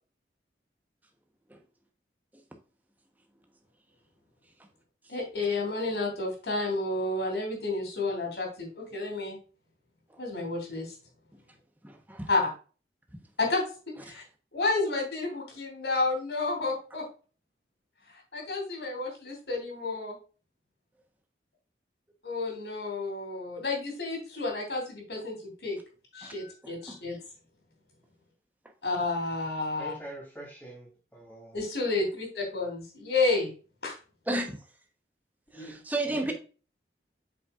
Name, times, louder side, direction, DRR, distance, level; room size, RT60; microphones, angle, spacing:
voice 1, 5.1-9.4 10.2-10.9 12.3-12.5 13.4-13.6 14.0-14.2 14.5-17.0 18.3-20.1 22.2-25.8 26.1-27.2 28.8-29.9 31.5-33.5 33.8-34.0, left 3 dB, 70° left, 2 dB, 3.0 m, -30 dB
voice 2, 11.8-12.3 26.2-26.3 26.9-27.0 34.3-34.6 35.6-36.3, right 2 dB, 10° right, 3 dB, 0.9 m, -32 dB
voice 3, 29.8-31.6 35.5-36.3, right 1 dB, 10° left, -2 dB, 2.9 m, -45 dB
7.5 x 5.7 x 2.4 m, 0.36 s
head